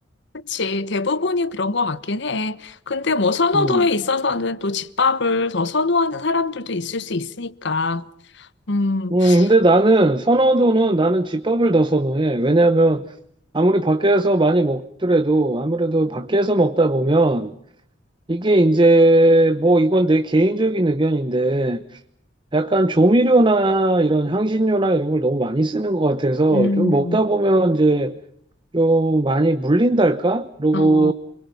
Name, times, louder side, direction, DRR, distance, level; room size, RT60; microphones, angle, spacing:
voice 1, 0.3-8.1 8.4-9.5 26.5-27.2 30.7-31.1, left 3 dB, 65° left, 1.2 m, -23 dB
voice 2, 9.1-13.0 13.5-17.5 18.3-21.8 22.5-28.1 28.7-31.1, right 2 dB, 25° right, 0.9 m, -18 dB
29.0 x 22.5 x 7.1 m
head